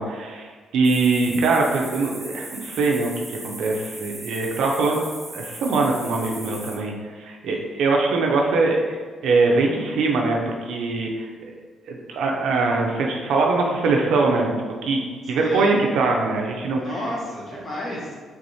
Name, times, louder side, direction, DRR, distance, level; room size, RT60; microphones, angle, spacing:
voice 1, 0.0-5.0 5.3-9.0 9.2-11.3 11.9-14.5 14.8-15.0 15.3-16.8, right 3 dB, 70° right, 0 dB, 0.6 m, -22 dB
sound 1, 0.8-6.8, right 2 dB, 10° right, 0.6 m, -38 dB
voice 2, 7.5-7.8 15.4-15.7 16.8-18.2, left 1 dB, 30° left, -5 dB, 1.0 m, -32 dB
4.7 x 3.5 x 2.7 m, 1.5 s
cardioid pair, 180°, 0 cm